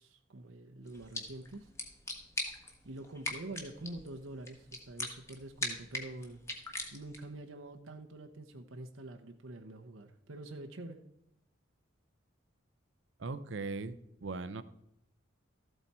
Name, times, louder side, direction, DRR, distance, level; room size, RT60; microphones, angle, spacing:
voice 1, 0.0-1.7 2.8-6.4 6.9-11.0, right 2 dB, 85° right, 3 dB, 1.0 m, -46 dB
sound 1, 0.9-7.4, left 2 dB, 15° left, 1.4 m, -42 dB
voice 2, 13.2-14.6, right 3 dB, 65° right, 13 dB, 0.6 m, -39 dB
13.5 x 8.0 x 4.3 m, 0.78 s
head